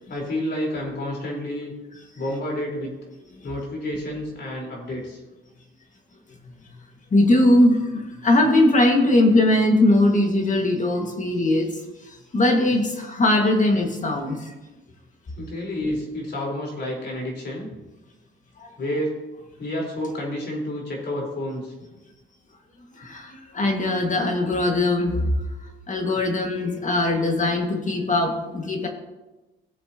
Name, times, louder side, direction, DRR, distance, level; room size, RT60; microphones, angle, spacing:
voice 1, 0.1-1.7 2.1-2.9 3.4-5.2 15.4-17.7 18.8-19.1 19.6-21.7, left 1 dB, 55° left, -2 dB, 4.1 m, -29 dB
voice 2, 7.1-7.8 8.2-11.7 12.3-14.4 23.0-25.3 25.9-28.9, left 1 dB, 40° left, 3 dB, 1.8 m, -20 dB
17.5 x 7.5 x 2.9 m, 1.1 s
cardioid pair, 90°, 20 cm